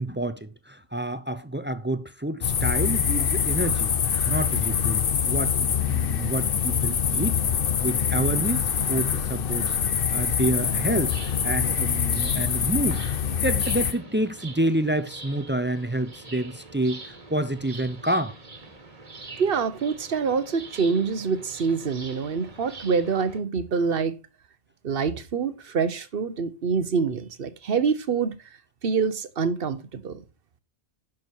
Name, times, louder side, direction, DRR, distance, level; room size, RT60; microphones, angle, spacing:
voice 1, 0.0-4.0 4.2-7.4 7.8-13.0 13.3-18.4, right 1 dB, 15° right, 0.4 m, -28 dB
sound 1, 2.4-13.9, left 8 dB, 60° left, 1.0 m, -25 dB
sound 2, 5.6-12.5, left 21 dB, 80° left, 2.4 m, -46 dB
sound 3, 10.6-23.4, right 3 dB, 35° right, 1.6 m, -44 dB
voice 2, 19.4-24.2 24.8-28.4 28.8-30.2, right 5 dB, 65° right, 1.1 m, -26 dB
10.5 x 6.1 x 4.5 m
omnidirectional pair, 1.0 m